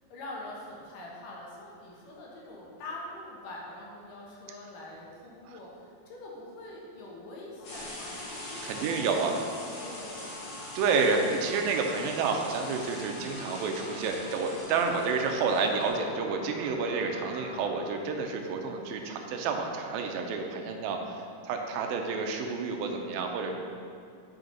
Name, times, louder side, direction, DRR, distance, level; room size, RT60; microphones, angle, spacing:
voice 1, 0.1-10.3, left 2 dB, 70° left, -3 dB, 2.6 m, -44 dB
sound 1, 7.6-17.7, left 2 dB, 90° left, 3.1 m, -46 dB
sound 2, 7.6-15.9, left 1 dB, 50° left, 2.1 m, -43 dB
voice 2, 8.6-9.4 10.8-23.5, right 4 dB, 85° right, 3 dB, 2.4 m, -29 dB
7.9 x 5.5 x 3.9 m, 2.4 s
omnidirectional pair, 4.1 m